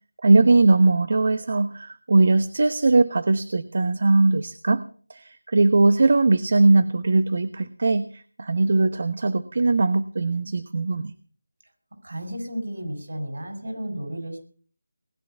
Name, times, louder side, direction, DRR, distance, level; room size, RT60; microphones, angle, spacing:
voice 1, 0.2-4.8 5.1-11.1, right 3 dB, 55° right, 13 dB, 1.0 m, -20 dB
voice 2, 12.0-14.4, equal, 75° right, 7 dB, 6.7 m, -33 dB
20.0 x 10.5 x 5.7 m, 0.43 s
figure-of-eight pair, 165°, 0 cm